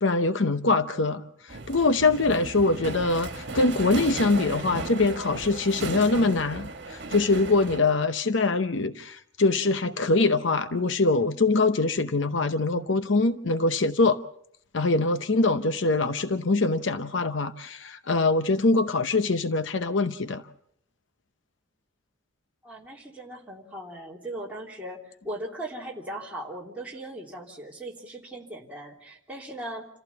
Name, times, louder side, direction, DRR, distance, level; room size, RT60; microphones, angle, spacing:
voice 1, 0.0-1.2 1.7-14.2 14.7-20.4, left 3 dB, 65° left, 10 dB, 0.8 m, -23 dB
sound 1, 1.5-7.8, right 2 dB, 55° right, 1.9 m, -35 dB
voice 2, 22.6-29.9, right 1 dB, 5° right, -4 dB, 3.2 m, -38 dB
28.0 x 14.5 x 7.0 m, 0.71 s
head